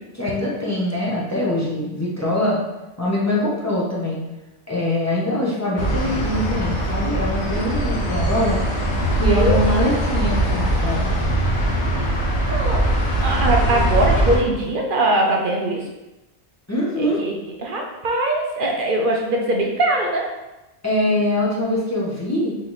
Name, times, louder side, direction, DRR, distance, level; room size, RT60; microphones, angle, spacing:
voice 1, 0.0-2.6 3.0-4.2 4.7-8.6 9.1-11.1 16.7-17.2 20.8-22.5, left 1 dB, 15° left, -6 dB, 0.9 m, -23 dB
sound 1, 5.8-14.4, right 1 dB, 70° left, 1.2 m, -21 dB
voice 2, 9.2-9.6 9.8-9.9 12.5-12.9 13.2-15.8 17.0-20.3, right 1 dB, 55° right, 0 dB, 0.8 m, -21 dB
4.2 x 3.1 x 3.9 m, 1.0 s
omnidirectional pair, 1.2 m